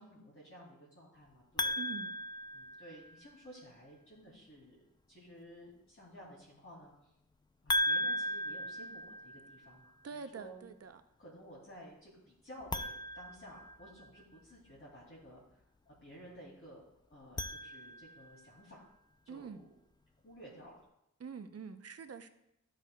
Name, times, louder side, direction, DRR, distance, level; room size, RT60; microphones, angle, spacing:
voice 1, 0.0-1.8 2.5-7.1 7.6-10.6 11.2-15.6 16.0-16.8 17.1-18.9 19.2-19.7 20.2-20.7, equal, 45° left, -6 dB, 2.4 m, -54 dB
sound 1, 1.6-3.3 7.7-9.7 12.6-14.2 17.1-18.3, equal, 15° left, 0.3 m, -37 dB
voice 2, 1.8-2.1 10.0-11.0 19.3-19.6 21.2-22.3, right 5 dB, 55° right, 9 dB, 0.6 m, -45 dB
12.5 x 6.4 x 2.2 m, 0.83 s
wide cardioid pair, 90°, 30 cm